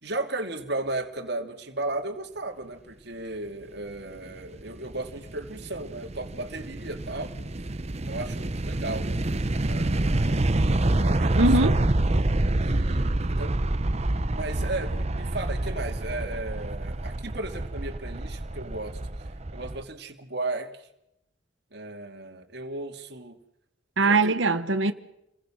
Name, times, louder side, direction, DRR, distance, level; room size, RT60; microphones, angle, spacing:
voice 1, 0.0-7.3 8.1-9.1 9.6-10.5 10.8-11.3 11.6-11.8 12.6-13.6 14.3-19.0 19.5-20.9 21.7-23.4 24.0-24.3, right 2 dB, 60° right, 2.6 m, -35 dB
sound 1, 4.3-19.8, right 1 dB, 35° right, 0.9 m, -27 dB
voice 2, 11.4-11.8 24.0-24.9, right 3 dB, 75° right, 1.2 m, -21 dB
29.0 x 22.0 x 6.5 m
head